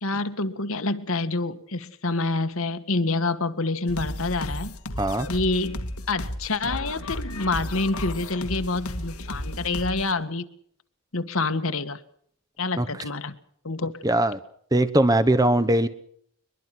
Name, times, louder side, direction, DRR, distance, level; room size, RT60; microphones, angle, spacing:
voice 1, 0.0-4.8 5.3-10.5 11.1-12.0 12.6-13.3 13.6-14.0, left 3 dB, 70° left, 9 dB, 1.8 m, -27 dB
sound 1, 3.9-10.1, left 1 dB, 90° left, 2.5 m, -33 dB
voice 2, 14.0-14.4 14.7-15.9, right 1 dB, 15° right, 11 dB, 1.1 m, -21 dB
23.0 x 22.5 x 6.2 m, 0.66 s
head